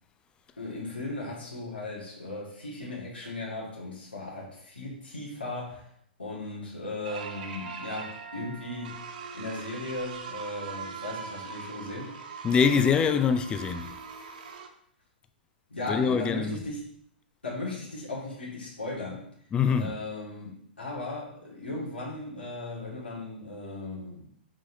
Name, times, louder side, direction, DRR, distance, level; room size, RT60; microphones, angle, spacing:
voice 1, 0.6-5.9 6.2-9.0 9.3-12.1 15.7-16.8 17.4-19.3 19.8-24.3, left 2 dB, 80° left, 2.0 m, -37 dB
sound 1, 7.0-14.7, right 5 dB, 50° right, 0.7 m, -41 dB
voice 2, 12.4-14.0 15.9-16.7 19.5-20.0, left 6 dB, 15° left, 0.4 m, -24 dB
6.2 x 6.1 x 2.7 m
figure-of-eight pair, 110°, 6 cm